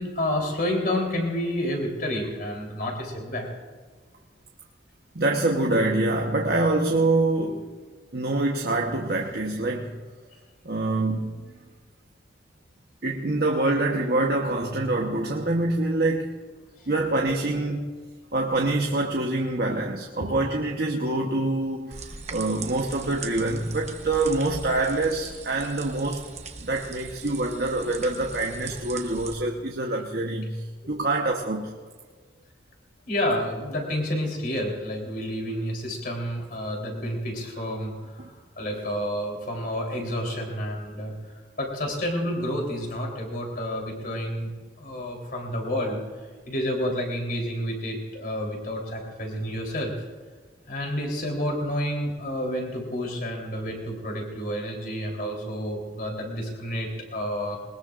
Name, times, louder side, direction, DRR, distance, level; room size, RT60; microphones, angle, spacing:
voice 1, 0.0-3.5 16.8-16.9 20.2-20.3 30.8-31.0 33.1-44.5 44.8-49.9 50.7-57.6, equal, 50° left, 3.6 m, -30 dB
voice 2, 5.1-7.7 8.1-10.0 10.6-11.5 13.0-16.3 16.9-17.9 18.3-26.2 26.6-31.7 38.2-38.3, right 2 dB, 55° right, 1.1 m, -25 dB
sound 1, 21.9-29.3, right 4 dB, 40° right, 1.0 m, -40 dB
21.0 x 20.0 x 2.5 m
head